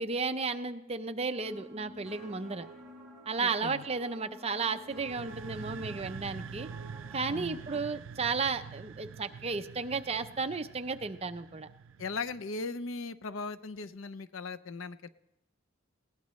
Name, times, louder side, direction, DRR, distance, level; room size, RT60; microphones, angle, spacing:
voice 1, 0.0-2.7 3.3-6.7 7.1-11.7, right 4 dB, 30° right, 9 dB, 0.6 m, -33 dB
sound 1, 1.4-7.8, right 1 dB, ahead, 4.1 m, -51 dB
voice 2, 3.4-3.8 7.3-7.6 12.0-15.1, left 3 dB, 85° left, 12 dB, 0.6 m, -38 dB
sound 2, 4.9-12.6, right 6 dB, 90° right, 0.4 m, -46 dB
20.0 x 18.0 x 3.2 m, 0.90 s
head